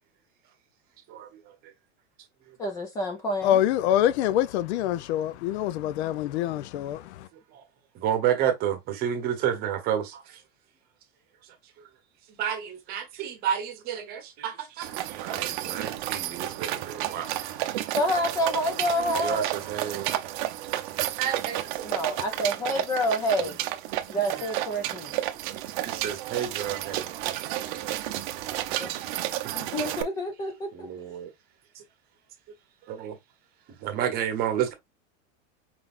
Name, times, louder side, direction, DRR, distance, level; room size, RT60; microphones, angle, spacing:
voice 1, 2.6-3.6 17.9-19.5 21.8-23.6 24.1-25.1 28.8-28.9 29.5-30.9, equal, 10° left, 0.4 m, -28 dB
voice 2, 3.4-7.3, left 12 dB, 70° left, 0.6 m, -25 dB
voice 3, 7.9-10.4 12.3-17.6 19.2-20.1 21.2-22.0 23.4-23.5 24.9-25.0 25.8-27.1 27.5-27.9 30.7-31.3 32.9-33.2 33.8-34.7, right 9 dB, 25° right, 1.0 m, -30 dB
sound 1, 14.8-30.0, right 14 dB, 45° right, 0.6 m, -32 dB
4.7 x 3.9 x 2.5 m
supercardioid pair, 180°, 35 cm